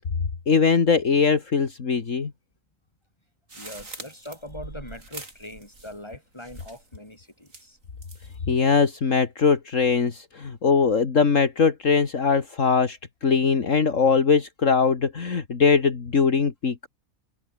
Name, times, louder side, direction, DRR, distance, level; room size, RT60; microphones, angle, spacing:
voice 1, 0.5-2.3 8.5-16.9, left 5 dB, 60° left, 2.2 m, -21 dB
voice 2, 3.5-7.8 8.3-8.5, left 1 dB, 20° left, 5.8 m, -42 dB
sound 1, 3.5-6.1 6.4-7.0 7.5-8.4, right 2 dB, 65° right, 5.1 m, -43 dB
omnidirectional pair, 1.5 m